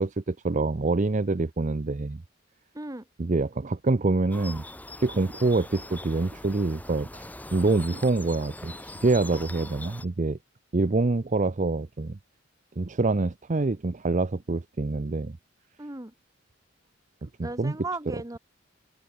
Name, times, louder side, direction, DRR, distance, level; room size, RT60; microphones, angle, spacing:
voice 1, 0.0-2.2 3.2-4.6 5.0-10.4 10.7-12.2 12.8-15.4 17.2-17.7, right 3 dB, 35° right, 0.6 m, -26 dB
voice 2, 2.7-3.1 15.8-16.1 17.4-18.4, right 2 dB, 15° right, 1.3 m, -36 dB
sound 1, 4.3-10.1, left 1 dB, 10° left, 1.8 m, -42 dB
head